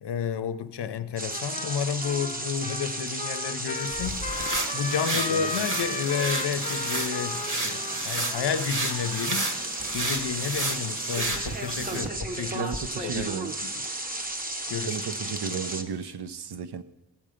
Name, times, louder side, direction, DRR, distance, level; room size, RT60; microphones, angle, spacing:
voice 1, 0.0-12.8 13.0-13.3 13.6-13.7 14.7-15.0 15.3-15.6, left 7 dB, 80° left, 0.7 m, -31 dB
sound 1, 1.2-15.8, right 2 dB, 20° right, 0.7 m, -34 dB
Trumpet, 1.3-9.6, left 4 dB, 20° left, 0.3 m, -37 dB
sound 2, 3.8-12.1, right 2 dB, 50° right, 1.3 m, -32 dB
voice 2, 5.1-5.5 11.8-13.5 14.8-16.8, right 7 dB, 75° right, 0.7 m, -35 dB
14.0 x 7.6 x 5.0 m
wide cardioid pair, 140°, 40 cm